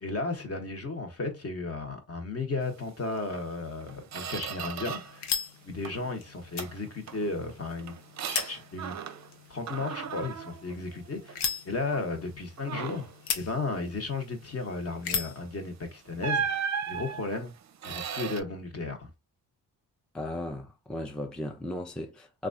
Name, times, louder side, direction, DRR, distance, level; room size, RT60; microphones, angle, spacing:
voice 1, 0.0-5.2 5.6-8.0 8.2-9.0 9.5-11.4 11.6-13.1 13.3-16.6 16.9-17.5 17.8-19.1, left 3 dB, 40° left, 1.0 m, -34 dB
Squeak, 3.3-3.5 3.8-5.3 5.6-6.1 6.6-9.4 9.7-11.5 11.9-12.1 12.6-13.2 15.3-15.5 16.2-18.4, right 7 dB, 45° right, 0.5 m, -36 dB
sound 1, 4.1-15.5, left 7 dB, 80° left, 0.7 m, -39 dB
voice 2, 20.1-22.5, left 1 dB, ahead, 0.4 m, -36 dB
3.0 x 2.4 x 2.5 m
cardioid pair, 65°, 39 cm